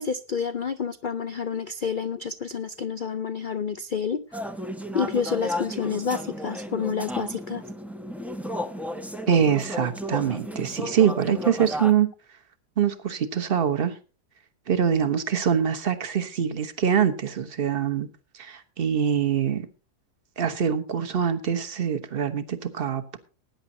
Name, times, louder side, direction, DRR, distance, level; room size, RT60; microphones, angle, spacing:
voice 1, 0.0-4.2 4.9-7.6, left 6 dB, 85° left, 12 dB, 0.4 m, -29 dB
sound 1, 4.3-11.9, equal, ahead, 0.6 m, -33 dB
voice 2, 9.3-12.1 12.8-14.0 14.7-18.1 18.3-19.7 20.4-23.2, right 8 dB, 40° right, 8 dB, 1.3 m, -24 dB
19.5 x 9.8 x 2.8 m, 0.32 s
omnidirectional pair, 1.7 m